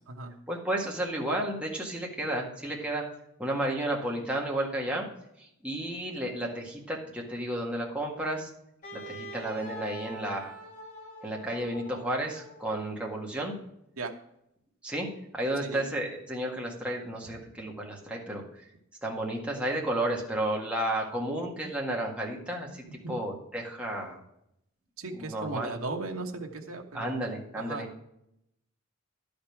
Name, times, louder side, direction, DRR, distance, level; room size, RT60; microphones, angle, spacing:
voice 1, 0.5-3.0 3.4-5.1 5.4-8.5 8.9-10.6 11.2-13.5 14.8-15.1 15.3-18.6 19.0-24.2 25.0-25.7 26.9-27.9, right 1 dB, 5° right, -2 dB, 1.9 m, -32 dB
Wind instrument woodwind instrument, 8.8-12.9, equal, 45° left, 3.3 m, -45 dB
voice 2, 25.0-27.1 27.5-28.0, right 3 dB, 80° right, 3 dB, 1.2 m, -36 dB
11.5 x 5.3 x 5.9 m, 0.78 s
head